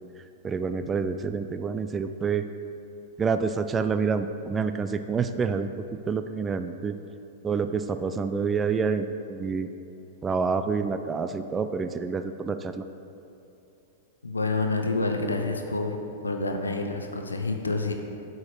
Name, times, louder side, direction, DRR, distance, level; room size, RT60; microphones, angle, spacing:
voice 1, 0.4-2.5 3.2-5.7 6.1-7.0 7.4-9.7 10.2-12.9, right 5 dB, 20° right, 10 dB, 0.3 m, -27 dB
voice 2, 14.2-16.0 16.2-17.9, left 3 dB, 80° left, 4 dB, 0.6 m, -28 dB
8.0 x 4.7 x 4.9 m, 2.7 s
figure-of-eight pair, 95°, 0 cm